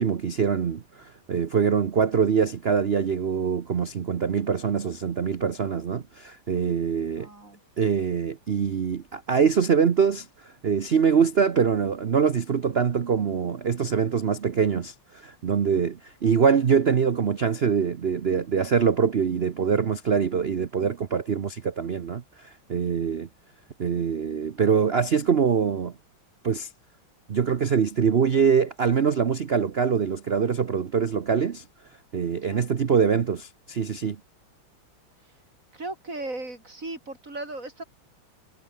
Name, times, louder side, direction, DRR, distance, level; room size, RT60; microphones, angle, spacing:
voice 1, 0.0-7.3 7.8-23.3 23.8-25.9 26.4-26.7 27.3-31.6 32.1-34.2, right 6 dB, 85° right, 0.5 m, -24 dB
voice 2, 7.2-7.6 32.3-32.7 35.7-37.8, right 2 dB, 35° right, 5.3 m, -37 dB
omnidirectional pair, 2.4 m